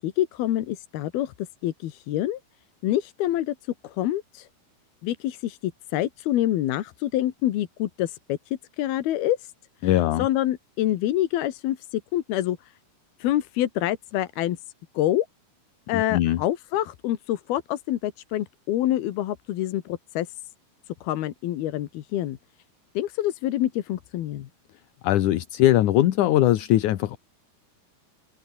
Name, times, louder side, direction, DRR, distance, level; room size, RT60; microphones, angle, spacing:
voice 1, 0.0-1.3 1.6-2.4 2.8-3.6 3.8-4.5 5.0-9.4 9.8-12.7 13.2-14.6 15.0-15.3 15.9-20.3 21.0-22.4 23.0-24.5, left 13 dB, 85° left, 3.3 m, -26 dB
voice 2, 9.8-10.3 15.9-16.4 25.0-27.2, left 14 dB, 65° left, 2.3 m, -21 dB
open air
omnidirectional pair, 4.3 m